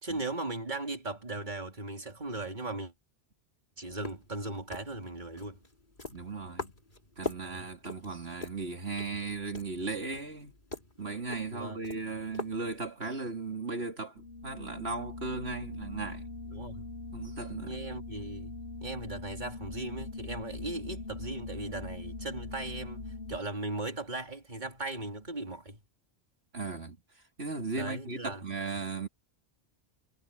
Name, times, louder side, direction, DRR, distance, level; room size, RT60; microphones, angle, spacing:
voice 1, 0.0-2.9 3.8-5.6 7.4-7.7 11.5-11.8 16.5-16.9 17.6-25.8 27.7-28.4, right 2 dB, 45° right, 3.6 m, -38 dB
sound 1, 3.9-13.1, left 2 dB, 45° left, 3.5 m, -44 dB
voice 2, 6.1-6.7 7.2-10.6 11.0-16.3 17.1-17.9 26.5-27.0 27.4-29.1, right 3 dB, 70° right, 3.6 m, -37 dB
sound 2, 14.2-23.4, left 3 dB, 85° left, 3.6 m, -42 dB
omnidirectional pair, 1.1 m